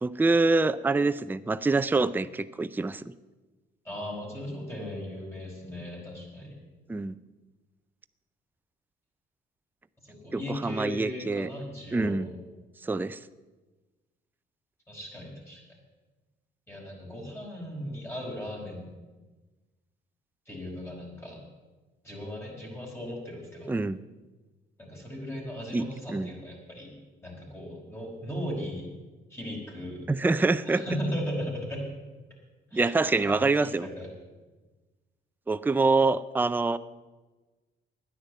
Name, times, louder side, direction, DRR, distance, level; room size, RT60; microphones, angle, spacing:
voice 1, 0.0-3.1 6.9-7.1 10.3-11.5 11.9-12.3 12.8-13.2 23.7-24.0 25.7-26.3 30.1-30.8 32.7-33.9 35.5-36.8, right 3 dB, 10° right, 13 dB, 0.4 m, -25 dB
voice 2, 3.8-6.6 10.0-12.4 14.9-15.6 16.7-18.8 20.5-21.4 22.0-23.8 24.8-26.9 27.2-28.9 29.3-30.1 30.7-31.9 32.7-32.9 33.3-34.1, equal, 15° left, -2 dB, 4.8 m, -37 dB
10.5 x 9.8 x 8.1 m, 1.2 s
cardioid pair, 90°, 20 cm